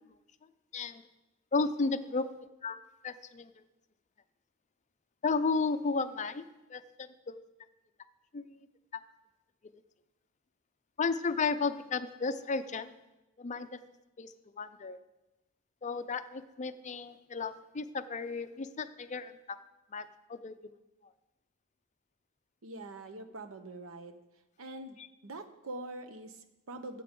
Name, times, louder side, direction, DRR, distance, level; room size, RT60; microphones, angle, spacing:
voice 1, 1.5-2.3 2.6-3.5 5.2-7.4 8.3-8.7 8.9-9.0 11.0-12.9 13.4-13.8 14.2-15.0 15.8-19.6 19.9-20.6 21.0-21.1 25.0-25.1, left 4 dB, 35° left, 11 dB, 0.5 m, -34 dB
voice 2, 22.6-24.2 24.6-25.0 25.2-27.0, right 2 dB, 70° right, 9 dB, 0.9 m, -44 dB
14.5 x 7.6 x 3.7 m, 1.0 s
head